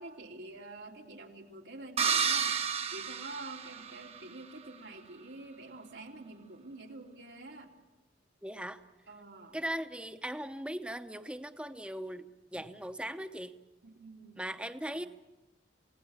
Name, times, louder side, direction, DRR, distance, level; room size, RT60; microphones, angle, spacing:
voice 1, 0.0-2.6 2.9-7.7 9.1-9.6 13.8-14.4 14.9-15.1, right 2 dB, 85° right, 0 dB, 3.1 m, -47 dB
sound 1, 2.0-4.2, right 7 dB, 35° right, 1.0 m, -31 dB
voice 2, 8.4-8.8 9.5-12.3 12.5-13.5 14.4-15.1, right 1 dB, 5° right, 9 dB, 0.8 m, -39 dB
28.5 x 17.5 x 7.2 m, 1.1 s
head